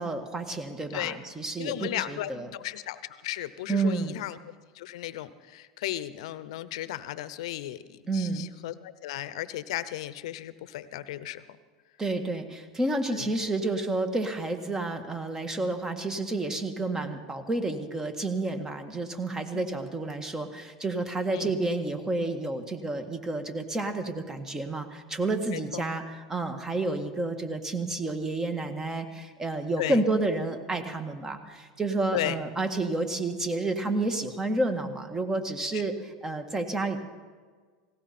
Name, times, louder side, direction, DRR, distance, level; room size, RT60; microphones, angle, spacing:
voice 1, 0.0-2.5 3.7-4.2 8.1-8.5 12.0-37.0, right 2 dB, 15° right, 7 dB, 1.7 m, -30 dB
voice 2, 1.6-4.4 4.7-11.4 13.1-13.3 19.5-19.6 21.3-21.5 25.5-25.8 29.8-30.0 32.1-32.4 35.7-35.8, left 14 dB, 70° left, 15 dB, 0.8 m, -35 dB
18.5 x 17.0 x 4.4 m, 1.5 s
hypercardioid pair, 100°, 3 cm